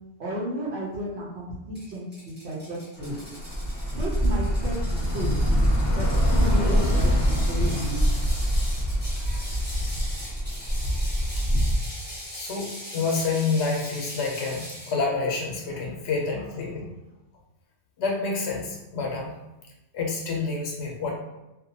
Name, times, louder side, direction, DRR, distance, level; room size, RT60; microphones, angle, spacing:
voice 1, 0.2-3.2 3.8-5.6 5.9-8.0, equal, 65° right, -8 dB, 0.9 m, -33 dB
Ratchet pawl, 1.7-15.0, equal, 10° right, 0.7 m, -41 dB
Bus / Traffic noise roadway noise, 3.0-11.8, equal, 20° left, 0.7 m, -24 dB
voice 2, 12.3-16.9 18.0-19.3 19.9-21.1, left 4 dB, 70° left, -1 dB, 0.9 m, -28 dB
2.5 x 2.1 x 2.7 m, 0.98 s
omnidirectional pair, 1.2 m